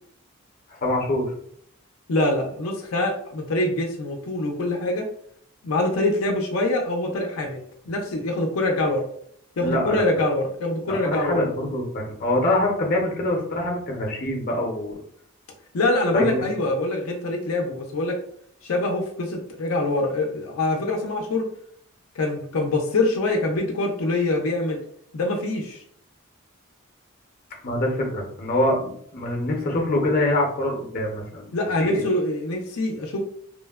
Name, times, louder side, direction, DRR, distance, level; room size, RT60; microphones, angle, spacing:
voice 1, 0.7-1.3 9.6-10.0 10.9-14.9 16.1-16.4 27.6-32.0, left 1 dB, 45° left, 0 dB, 0.6 m, -25 dB
voice 2, 2.1-5.1 5.6-9.1 9.6-11.5 15.7-18.2 18.6-21.4 22.2-24.8 25.1-25.8 31.5-33.2, left 2 dB, 90° left, 2 dB, 0.5 m, -24 dB
3.0 x 2.1 x 2.3 m, 0.66 s
head